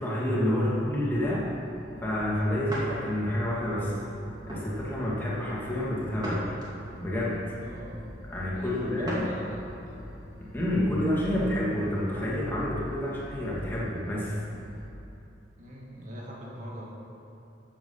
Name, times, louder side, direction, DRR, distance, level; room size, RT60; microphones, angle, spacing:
voice 1, 0.0-1.5 2.0-3.9 4.5-6.5 7.0-7.4 8.3-9.3 10.5-14.3, left 1 dB, 10° left, -7 dB, 2.3 m, -28 dB
sound 1, 0.6-14.9, equal, 70° right, 2.2 m, -45 dB
sound 2, 2.7-3.0 3.6-3.7 4.5-4.7 6.2-7.0 9.0-9.4 9.9-10.0 11.6-12.3, right 1 dB, 20° right, 2.3 m, -38 dB
voice 2, 7.6-8.0 8.5-9.8 15.6-16.9, equal, 40° right, -4 dB, 2.4 m, -42 dB
12.5 x 7.7 x 5.6 m, 2.9 s
head